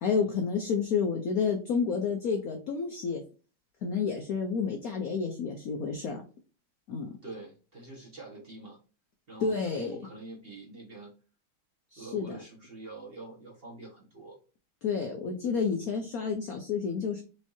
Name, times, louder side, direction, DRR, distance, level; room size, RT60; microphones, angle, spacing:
voice 1, 0.0-3.2 3.8-6.2 6.9-7.1 9.4-10.0 11.9-12.4 14.8-17.2, left 5 dB, 70° left, 3 dB, 0.8 m, -30 dB
voice 2, 7.2-8.8 9.3-11.1 12.0-14.4, right 2 dB, 35° right, -3 dB, 1.2 m, -45 dB
4.8 x 3.2 x 2.7 m, 0.35 s
omnidirectional pair, 2.2 m